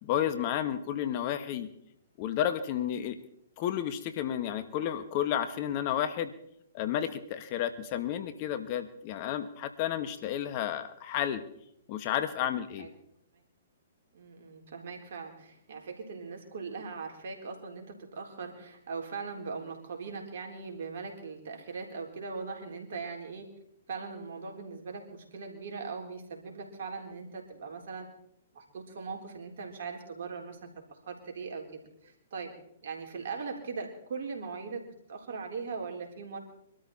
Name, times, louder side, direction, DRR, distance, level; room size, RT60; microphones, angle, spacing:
voice 1, 0.0-1.7 2.2-3.2 3.6-6.3 6.7-11.4 11.9-12.9, left 10 dB, 40° left, 10 dB, 1.5 m, -31 dB
voice 2, 14.1-23.5 23.9-28.1 28.5-32.5 32.8-34.8 35.1-36.4, right 4 dB, 60° right, 2 dB, 4.1 m, -40 dB
24.0 x 13.0 x 4.3 m, 0.72 s
hypercardioid pair, 125°, 0 cm